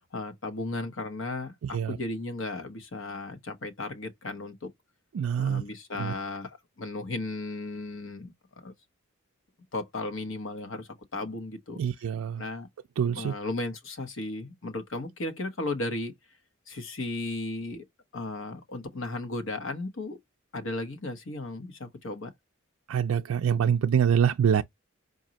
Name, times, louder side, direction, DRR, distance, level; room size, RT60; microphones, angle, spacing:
voice 1, 0.0-4.7 5.4-8.7 9.7-11.8 12.4-12.7 13.1-16.1 16.7-17.8 18.1-20.2 20.5-22.3, left 2 dB, 75° left, 1.0 m, -35 dB
voice 2, 5.1-5.6 6.0-6.1 11.8-12.4 13.0-13.3 22.9-24.6, right 8 dB, 80° right, 0.3 m, -25 dB
5.0 x 2.6 x 2.8 m
head